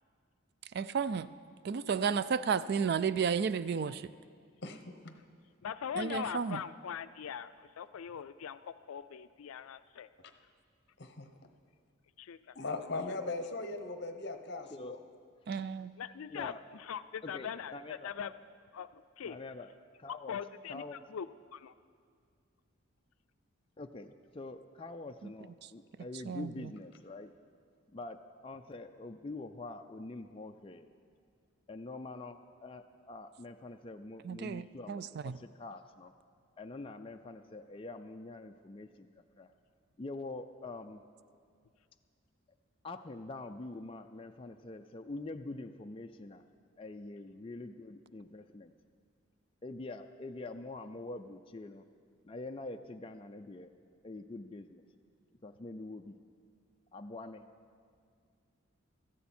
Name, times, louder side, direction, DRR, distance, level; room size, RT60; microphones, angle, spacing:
voice 1, 0.7-1.3 1.6-4.1 6.0-6.6 15.5-15.9 25.2-25.3 25.6-25.7 26.3-26.7 34.2-35.4, right 6 dB, 50° right, 16 dB, 0.3 m, -33 dB
voice 2, 4.6-5.1 11.0-11.3 12.5-15.0, left 3 dB, 55° left, 7 dB, 1.0 m, -39 dB
voice 3, 5.6-10.1 12.2-12.5 16.0-18.3 18.7-19.4 20.1-21.7, left 8 dB, 85° left, 13 dB, 0.4 m, -41 dB
voice 4, 16.3-16.6 17.2-18.1 19.2-19.7 20.0-20.4 20.7-21.0 23.8-27.3 27.9-30.9 31.7-36.1 36.6-39.1 39.4-39.5 40.0-41.0 42.8-46.4 46.8-48.7 49.6-51.8 52.2-53.7 54.0-54.8 55.4-56.2 56.9-57.4, left 2 dB, 25° left, 5 dB, 0.4 m, -45 dB
16.5 x 13.5 x 4.4 m, 2.2 s
head